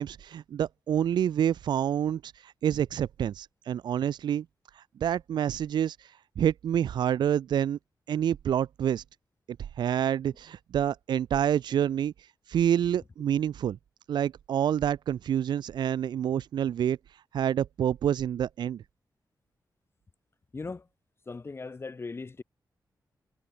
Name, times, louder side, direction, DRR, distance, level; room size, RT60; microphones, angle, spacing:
voice 1, 0.0-4.4 4.7-7.8 8.1-9.0 9.8-12.1 12.5-13.8 14.1-17.0 17.3-18.8, right 9 dB, 85° right, 0.4 m, -28 dB
voice 2, 20.5-20.8 21.3-22.4, left 4 dB, 35° left, 1.5 m, -38 dB
cardioid pair, 95°, 7 cm